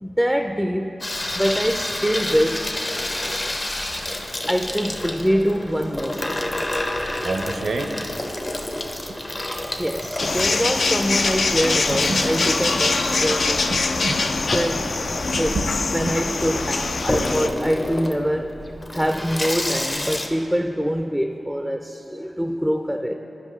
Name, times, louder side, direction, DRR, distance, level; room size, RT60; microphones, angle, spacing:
voice 1, 0.0-1.0 1.3-2.8 4.5-6.4 9.8-13.7 14.5-15.1 15.4-15.6 15.9-18.6 18.9-23.1, equal, ahead, 4 dB, 0.4 m, -24 dB
Water tap faucet / Sink (filling or washing), 1.0-20.3, left 1 dB, 40° left, 0.8 m, -30 dB
voice 2, 7.2-7.9 9.1-9.4 10.4-10.5 11.9-12.3 13.3-13.4 13.7-14.2 15.2-15.7 16.0-16.1, right 3 dB, 80° right, 5 dB, 0.5 m, -29 dB
sound 1, 10.2-17.5, left 3 dB, 75° left, 0.3 m, -23 dB
12.0 x 5.0 x 3.1 m, 3.0 s
cardioid pair, 45°, 0 cm